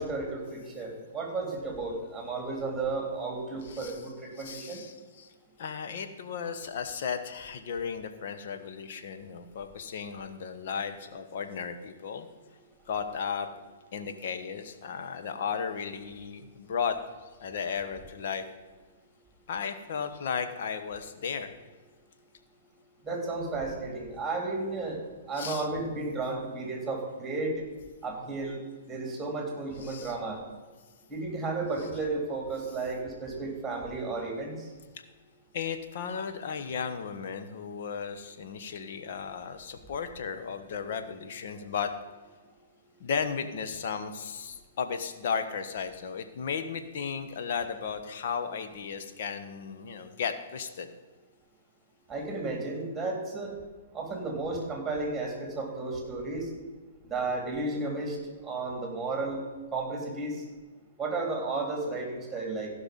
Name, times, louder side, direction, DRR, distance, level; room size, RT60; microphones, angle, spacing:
voice 1, 0.0-4.8 23.0-27.6 28.0-30.4 31.1-34.5 52.1-53.5 53.9-56.5 57.1-58.2 58.4-59.4 59.7-60.4 61.0-62.7, right 3 dB, 10° right, 1 dB, 3.6 m, -33 dB
voice 2, 3.6-4.0 4.4-5.3 5.6-12.3 12.9-13.5 13.9-17.0 17.4-18.4 19.5-21.5 25.3-25.7 29.8-30.2 35.5-41.9 43.0-50.9, left 6 dB, 60° left, 7 dB, 1.2 m, -35 dB
15.5 x 5.9 x 5.4 m, 1.4 s
hypercardioid pair, 120°, 0 cm